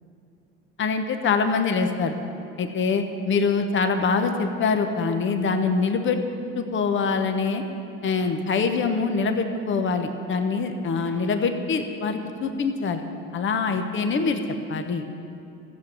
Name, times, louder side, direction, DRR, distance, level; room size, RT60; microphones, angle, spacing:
voice 1, 0.8-2.2 2.6-6.2 6.6-7.6 8.0-13.0 13.3-14.4 14.7-15.0, left 4 dB, 40° left, 6 dB, 1.2 m, -24 dB
14.0 x 7.4 x 7.7 m, 2.7 s
hypercardioid pair, 80°, 31 cm